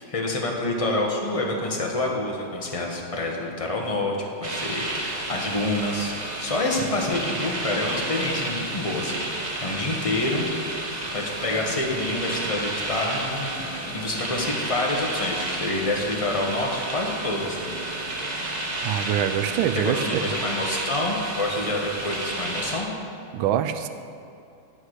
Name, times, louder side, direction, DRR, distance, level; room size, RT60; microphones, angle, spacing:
voice 1, 0.0-6.1 6.4-9.2 9.6-10.5 11.1-13.6 13.9-17.7 19.7-22.9, left 2 dB, 20° left, -1 dB, 1.0 m, -27 dB
sound 1, 4.4-22.8, right 2 dB, 35° right, 0.7 m, -31 dB
voice 2, 18.8-20.2 23.3-23.9, right 10 dB, 80° right, 10 dB, 1.4 m, -24 dB
11.5 x 4.9 x 8.0 m, 2.6 s
omnidirectional pair, 2.3 m